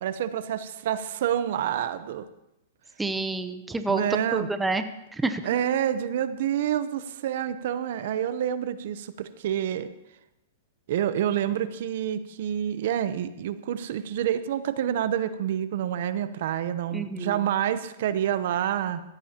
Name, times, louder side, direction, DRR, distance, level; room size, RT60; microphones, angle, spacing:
voice 1, 0.0-2.3 3.9-4.5 5.4-9.9 10.9-19.0, right 10 dB, 65° right, 13 dB, 0.7 m, -28 dB
voice 2, 3.0-4.0 4.3-4.8 5.1-5.4 16.9-17.5, right 3 dB, 5° right, 8 dB, 0.7 m, -28 dB
15.5 x 13.5 x 2.9 m, 0.87 s
hypercardioid pair, 135°, 0 cm